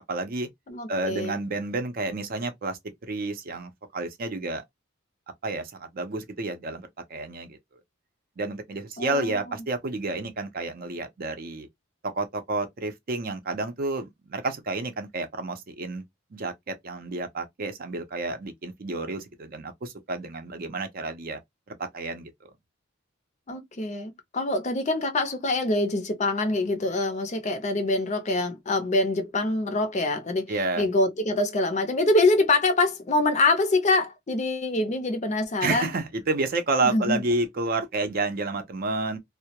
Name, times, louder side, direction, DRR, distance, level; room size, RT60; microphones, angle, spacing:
voice 1, 0.0-0.5 0.9-4.6 5.4-7.6 8.4-11.7 12.0-16.0 16.3-21.4 21.7-22.5 30.5-30.8 35.6-39.2, right 3 dB, 45° right, 0.5 m, -30 dB
voice 2, 0.7-1.4 9.0-9.6 23.5-35.9 36.8-37.2, left 2 dB, 35° left, 0.5 m, -25 dB
2.2 x 2.0 x 2.7 m
head